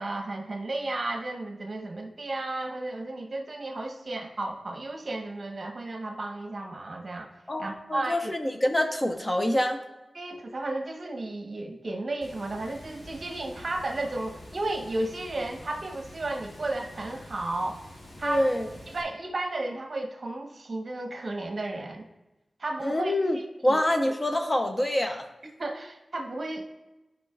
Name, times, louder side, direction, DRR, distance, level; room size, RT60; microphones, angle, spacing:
voice 1, 0.0-8.4 10.1-17.8 18.2-18.5 18.9-22.1 22.6-23.1 23.7-23.8 25.6-26.7, right 2 dB, 50° right, 2 dB, 1.1 m, -33 dB
voice 2, 7.5-9.8 18.2-18.7 22.8-23.4 23.6-25.3, left 1 dB, 25° left, 4 dB, 0.7 m, -26 dB
Water, 12.2-19.0, left 1 dB, 85° left, 2.1 m, -47 dB
14.0 x 5.2 x 2.4 m, 1.0 s
wide cardioid pair, 110°, 0 cm